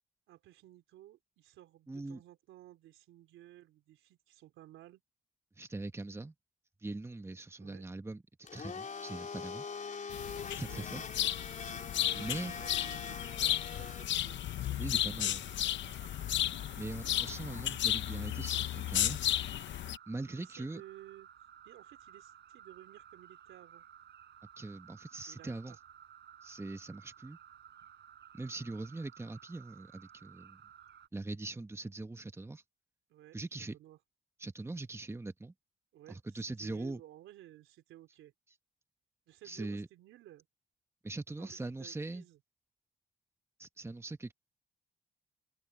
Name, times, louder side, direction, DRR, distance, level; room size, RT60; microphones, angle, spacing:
voice 1, 0.3-5.0 7.6-7.8 10.7-11.3 12.0-15.3 20.3-21.3 21.6-23.8 25.3-25.8 33.1-33.4 33.7-34.0 35.9-38.3 39.3-40.5 41.4-42.4, right 14 dB, 90° right, 3.6 m, -56 dB
voice 2, 1.9-2.2 5.6-6.3 6.8-9.6 10.5-11.0 12.1-12.5 14.8-15.4 16.7-19.3 20.1-20.8 24.6-25.8 26.4-27.4 28.3-30.6 31.1-32.6 33.3-33.8 34.4-35.5 36.1-37.0 39.4-39.9 41.0-42.2 43.6-44.3, right 2 dB, 15° right, 1.3 m, -41 dB
Domestic sounds home sounds, 8.4-14.0, left 5 dB, 40° left, 4.3 m, -43 dB
sound 1, 10.1-20.0, left 13 dB, 65° left, 0.6 m, -34 dB
sound 2, 11.3-31.1, right 9 dB, 60° right, 5.4 m, -56 dB
cardioid pair, 90°, 20 cm